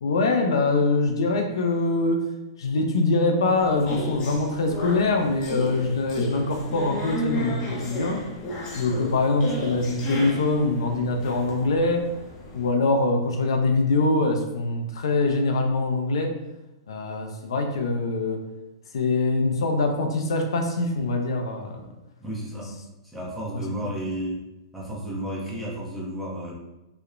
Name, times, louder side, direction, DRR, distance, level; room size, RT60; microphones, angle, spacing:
voice 1, 0.0-2.3 2.6-8.2 8.8-12.1 12.5-16.4 16.9-18.4 18.9-21.9 23.5-23.6, left 3 dB, 80° left, 4 dB, 0.4 m, -23 dB
sound 1, 3.6-12.7, left 1 dB, 35° left, 0.6 m, -34 dB
voice 2, 22.2-22.7 23.1-24.4 24.7-26.5, right 1 dB, ahead, -7 dB, 0.7 m, -32 dB
2.9 x 2.0 x 2.4 m, 0.97 s
hypercardioid pair, 135°, 2 cm